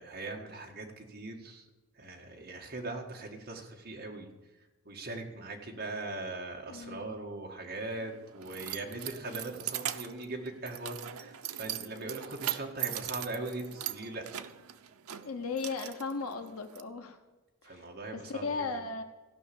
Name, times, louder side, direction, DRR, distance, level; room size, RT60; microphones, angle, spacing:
voice 1, 0.0-1.7 1.9-4.3 4.9-14.4 17.6-18.6, right 2 dB, 45° right, 1 dB, 2.0 m, -40 dB
voice 2, 6.7-7.2 15.2-17.2 17.6-17.8 18.1-19.0, left 4 dB, 85° left, 6 dB, 0.9 m, -36 dB
Keys jangling, 7.7-16.8, right 12 dB, 85° right, 0.7 m, -40 dB
15.5 x 5.8 x 8.6 m, 1.2 s
head